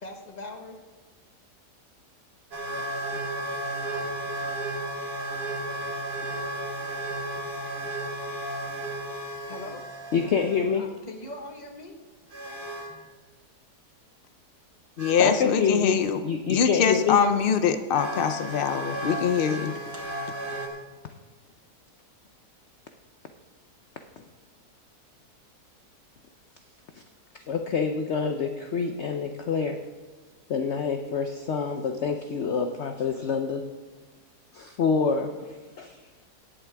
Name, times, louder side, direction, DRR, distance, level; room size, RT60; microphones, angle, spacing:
voice 1, 0.0-0.8 9.5-9.8 10.7-12.0, left 2 dB, 30° left, 3 dB, 1.3 m, -40 dB
sound 1, 2.5-10.6 12.3-12.9 15.0-15.1 17.2-17.3 17.9-20.7, right 1 dB, 75° right, 2.2 m, -33 dB
voice 2, 10.1-10.9 15.2-17.2 27.3-29.8 30.5-33.6 34.5-36.0, left 5 dB, 60° left, 6 dB, 0.8 m, -27 dB
voice 3, 15.0-16.2 16.5-19.8, left 7 dB, 85° left, 9 dB, 0.4 m, -23 dB
18.0 x 7.4 x 3.4 m, 1.4 s
omnidirectional pair, 1.7 m